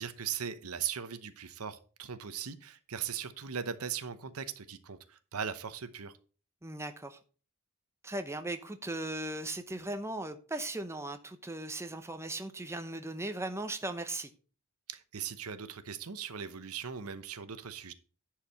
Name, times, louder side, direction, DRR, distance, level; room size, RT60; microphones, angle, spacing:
voice 1, 0.0-6.1 14.9-17.9, right 7 dB, 85° right, 0.9 m, -39 dB
voice 2, 6.6-7.2 8.0-14.3, right 2 dB, 10° right, 0.8 m, -38 dB
10.5 x 4.8 x 5.6 m
head